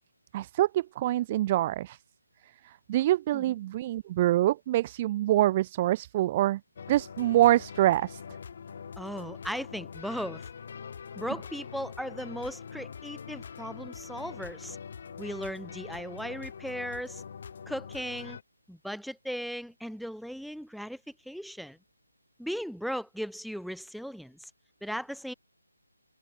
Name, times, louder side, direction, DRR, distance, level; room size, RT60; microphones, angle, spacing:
voice 1, 0.3-2.0 2.9-6.6 6.9-8.2, right 14 dB, 25° right, 0.6 m, -25 dB
sound 1, 6.8-18.4, left 6 dB, 45° left, 4.2 m, -43 dB
voice 2, 9.0-10.5 11.2-14.8 15.2-17.2 17.7-18.4 18.7-21.0 21.3-21.8 22.4-24.4 24.8-25.3, equal, ahead, 5.4 m, -37 dB
figure-of-eight pair, 160°, 0 cm